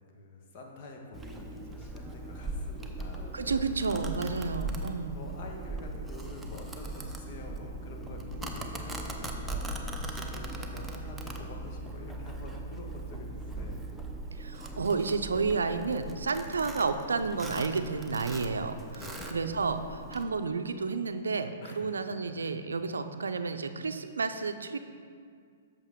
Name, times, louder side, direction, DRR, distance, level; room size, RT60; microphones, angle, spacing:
voice 1, 0.1-3.7 4.3-13.8 18.8-19.4 21.6-22.6, left 2 dB, 50° left, 1 dB, 1.3 m, -47 dB
Domestic sounds home sounds, 1.1-20.2, right 2 dB, 5° right, 0.7 m, -39 dB
voice 2, 3.3-5.2 14.4-19.0 19.3-24.8, right 4 dB, 85° right, 9 dB, 0.5 m, -31 dB
8.1 x 6.7 x 3.6 m, 2.1 s
hypercardioid pair, 125°, 0 cm